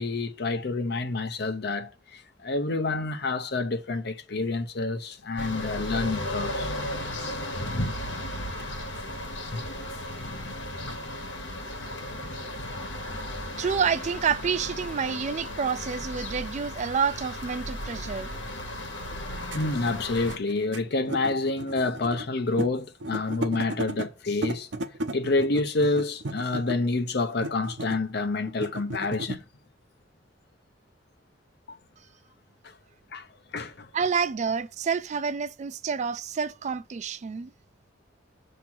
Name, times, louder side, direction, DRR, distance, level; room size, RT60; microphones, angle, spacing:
voice 1, 0.0-6.7 7.1-7.4 9.5-9.6 19.5-24.7 25.1-29.4 31.7-31.8 32.6-32.7 33.1-33.3 33.5-33.9, left 3 dB, 65° left, 0.8 m, -28 dB
sound 1, 5.4-20.4, left 1 dB, 80° left, 1.3 m, -35 dB
voice 2, 13.6-18.3 33.9-37.5, right 6 dB, 40° right, 0.3 m, -28 dB
sound 2, 16.6-16.7 17.7-17.8 19.1-19.2 19.4-22.3 22.6-22.7 23.0-24.1 24.4-26.9 27.4-28.1 28.5-29.4, right 1 dB, 80° right, 0.9 m, -34 dB
7.1 x 3.0 x 6.0 m
head